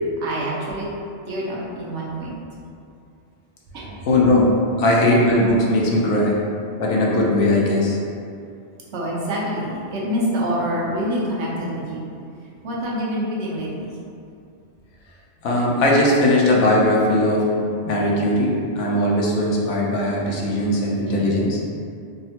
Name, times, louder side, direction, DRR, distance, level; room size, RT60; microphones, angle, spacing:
voice 1, 0.2-0.9 1.3-2.3 3.7-4.0 8.9-12.0 12.6-13.9 21.1-21.3, equal, 75° right, -5 dB, 0.9 m, -26 dB
voice 2, 4.1-4.5 4.8-6.4 6.8-8.0 15.4-21.6, left 1 dB, 85° left, -3 dB, 1.0 m, -19 dB
3.6 x 2.1 x 2.7 m, 2.5 s
omnidirectional pair, 1.2 m